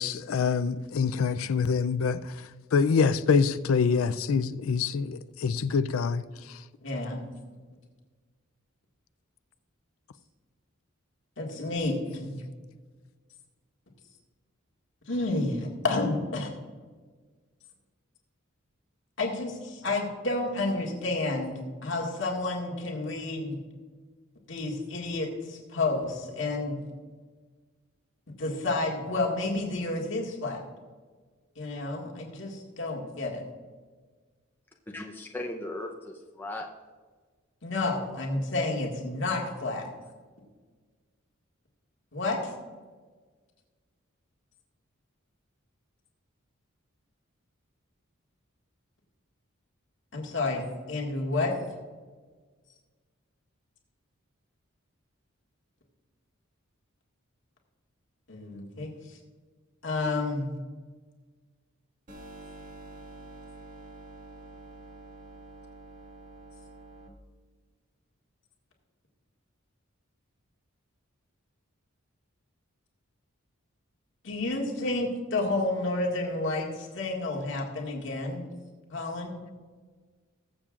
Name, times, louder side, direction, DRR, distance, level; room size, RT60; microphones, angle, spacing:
voice 1, 0.0-2.3 2.7-6.2 6.5-6.6, left 5 dB, 80° left, 0.4 m, -25 dB
voice 2, 6.8-7.3 11.4-12.4 15.1-16.5 19.2-23.6 24.5-26.8 28.4-30.6 31.6-33.4 37.6-39.9 42.1-42.5 50.1-51.5 58.3-59.2 59.8-60.5 74.2-78.5 78.9-79.4, left 2 dB, 60° left, 1.9 m, -30 dB
voice 3, 34.9-36.7, left 1 dB, 10° left, 0.7 m, -37 dB
sound 1, 62.1-67.1, right 2 dB, 40° right, 1.6 m, -47 dB
21.0 x 7.4 x 2.5 m
head